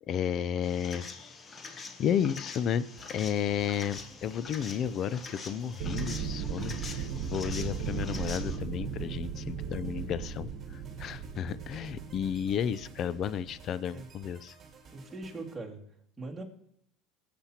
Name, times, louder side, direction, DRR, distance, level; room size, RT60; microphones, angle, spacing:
voice 1, 0.1-1.3 2.0-14.5, left 8 dB, 45° left, 18 dB, 0.4 m, -32 dB
sound 1, 0.6-8.6, left 4 dB, 30° left, 1.0 m, -45 dB
sound 2, 3.0-15.6, right 5 dB, 30° right, 2.3 m, -55 dB
sound 3, 5.8-13.6, right 7 dB, 60° right, 1.2 m, -37 dB
voice 2, 14.9-15.8 16.2-16.4, right 3 dB, 10° right, -2 dB, 2.3 m, -41 dB
19.0 x 8.4 x 2.9 m, 0.73 s
supercardioid pair, 95°, 0 cm